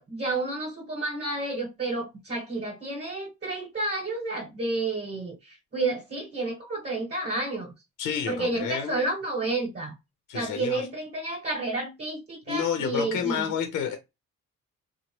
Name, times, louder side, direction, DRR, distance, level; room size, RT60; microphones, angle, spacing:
voice 1, 0.0-7.7 8.3-9.9 10.3-13.5, right 2 dB, 35° right, 1.2 m, -30 dB
voice 2, 8.0-9.0 10.3-10.8 12.5-14.0, left 8 dB, 90° left, 0.7 m, -29 dB
2.8 x 2.2 x 3.0 m
cardioid pair, 90°, 30 cm